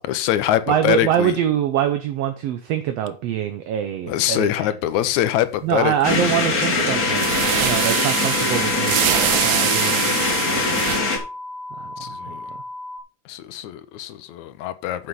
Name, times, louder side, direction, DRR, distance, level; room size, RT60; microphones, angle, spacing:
voice 1, 0.0-1.4 4.1-6.3 12.0-12.5 13.3-15.1, left 12 dB, 80° left, 2.1 m, -23 dB
voice 2, 0.7-4.8 5.6-9.0 9.4-10.9 11.8-12.4, right 10 dB, 70° right, 1.8 m, -24 dB
sound 1, 6.0-11.2, left 3 dB, 35° left, 1.8 m, -22 dB
sound 2, 6.0-6.3 7.1-11.0, right 15 dB, 85° right, 1.3 m, -24 dB
sound 3, 6.9-13.0, left 2 dB, 15° right, 0.5 m, -35 dB
8.0 x 6.5 x 5.5 m
omnidirectional pair, 3.4 m